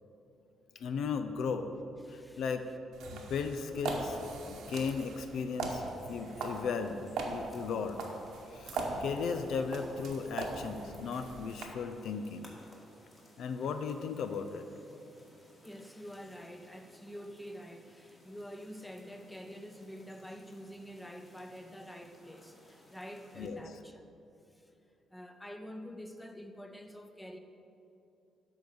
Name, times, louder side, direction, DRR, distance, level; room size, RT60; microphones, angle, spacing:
voice 1, 0.8-1.7 2.1-2.7 3.1-4.2 4.5-5.8 6.1-8.0 8.5-12.5 13.4-14.7 23.4-23.6, left 5 dB, 70° left, 8 dB, 0.5 m, -36 dB
voice 2, 2.0-2.5 15.6-24.1 24.5-24.7 25.1-27.4, equal, 10° left, 6 dB, 0.7 m, -47 dB
sound 1, 2.9-11.6, right 3 dB, 80° right, 1.1 m, -40 dB
sound 2, 5.6-23.5, left 1 dB, 25° left, 1.9 m, -60 dB
10.5 x 4.0 x 6.7 m, 2.7 s
cardioid pair, 90°, 0 cm